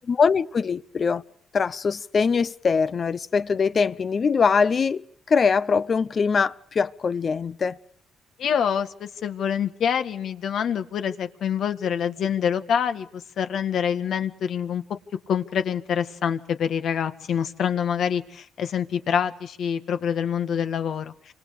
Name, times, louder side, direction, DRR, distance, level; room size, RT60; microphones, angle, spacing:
voice 1, 0.1-1.2 1.5-7.8, left 5 dB, 45° left, 0.8 m, -22 dB
voice 2, 8.4-14.8 15.3-21.3, left 8 dB, 65° left, 1.8 m, -26 dB
28.0 x 26.0 x 5.0 m
cardioid pair, 90°, 0 cm